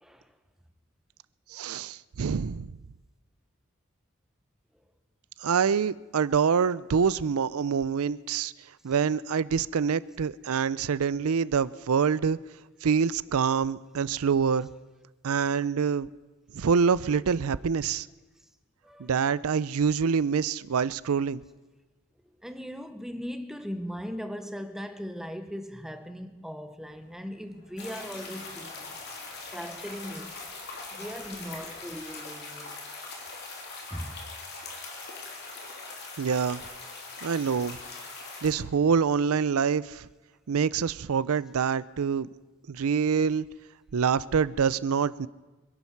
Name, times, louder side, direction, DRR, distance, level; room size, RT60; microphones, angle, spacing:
voice 1, 0.0-0.4 4.7-4.8 8.8-8.9 18.4-18.5 18.8-19.1 22.4-29.0 29.5-30.4 30.9-32.9 33.9-34.3, equal, ahead, 0.7 m, -39 dB
voice 2, 1.5-2.7 5.4-8.5 8.8-12.4 12.8-14.7 15.2-16.1 16.5-18.1 19.0-21.4 36.2-36.6 37.2-37.8 38.4-40.1 40.5-42.3 42.7-43.5 43.9-45.3, right 6 dB, 75° right, 0.5 m, -26 dB
sound 1, 26.8-32.2, equal, 80° left, 7.0 m, -59 dB
sound 2, 27.8-38.5, left 3 dB, 45° left, 2.9 m, -41 dB
26.0 x 11.5 x 4.6 m
head